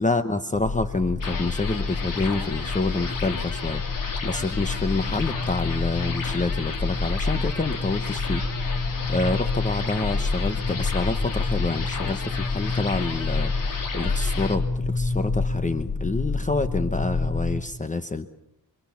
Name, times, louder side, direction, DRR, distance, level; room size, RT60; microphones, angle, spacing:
voice 1, 0.0-3.8 4.2-8.4 9.1-13.5 13.9-18.3, left 3 dB, 20° left, 9 dB, 1.0 m, -27 dB
sound 1, 0.5-17.6, left 3 dB, 85° left, 5.2 m, -28 dB
sound 2, 1.2-14.6, left 4 dB, 55° left, 3.3 m, -34 dB
27.0 x 24.5 x 7.1 m, 0.76 s
wide cardioid pair, 160°, 39 cm